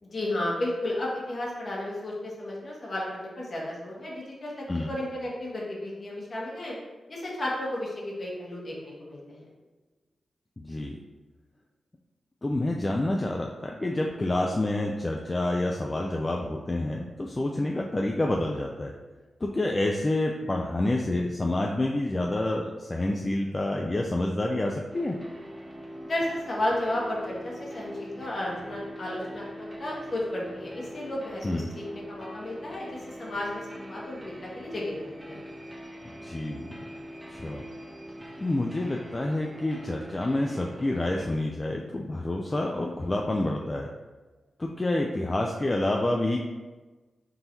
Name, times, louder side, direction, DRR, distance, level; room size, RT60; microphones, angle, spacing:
voice 1, 0.0-6.7 7.1-9.5 26.0-35.4, left 1 dB, 50° left, -4 dB, 1.3 m, -33 dB
voice 2, 10.6-11.0 12.4-18.9 19.4-25.2 31.4-31.7 36.1-36.8 37.3-37.6 38.4-43.9 44.6-46.4, left 1 dB, 30° left, 0 dB, 0.4 m, -28 dB
sound 1, 24.9-41.3, equal, 20° right, 0.6 m, -43 dB
3.7 x 2.6 x 4.4 m, 1.2 s
cardioid pair, 65°, 0 cm